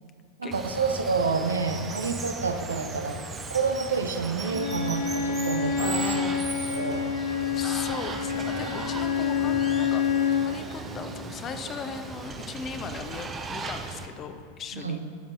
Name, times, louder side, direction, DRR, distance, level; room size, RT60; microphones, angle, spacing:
voice 1, 0.4-3.2 3.5-6.3 6.7-7.1 14.7-15.0, right 4 dB, 75° right, 6 dB, 0.7 m, -28 dB
Water, 0.5-14.1, right 4 dB, 20° right, 0.7 m, -37 dB
Bowed string instrument, 4.5-10.5, left 7 dB, 75° left, 1.5 m, -27 dB
voice 2, 5.8-7.0 7.5-15.0, left 6 dB, 30° left, 8 dB, 0.8 m, -38 dB
20.5 x 7.1 x 2.6 m, 2.1 s
figure-of-eight pair, 90°, 0 cm